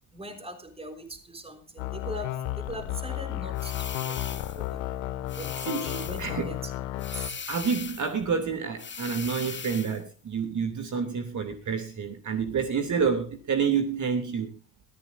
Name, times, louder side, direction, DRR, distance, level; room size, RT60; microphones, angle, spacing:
voice 1, 0.1-4.8 5.4-7.2, right 1 dB, 10° right, 3.8 m, -41 dB
sound 1, 1.8-7.3, left 14 dB, 65° left, 2.0 m, -33 dB
sound 2, 3.6-4.7 5.3-6.4 7.0-8.2 8.8-10.0, left 6 dB, 25° left, 1.6 m, -39 dB
voice 2, 7.5-14.5, right 6 dB, 35° right, 2.9 m, -28 dB
22.0 x 14.5 x 2.7 m
hypercardioid pair, 65°, 48 cm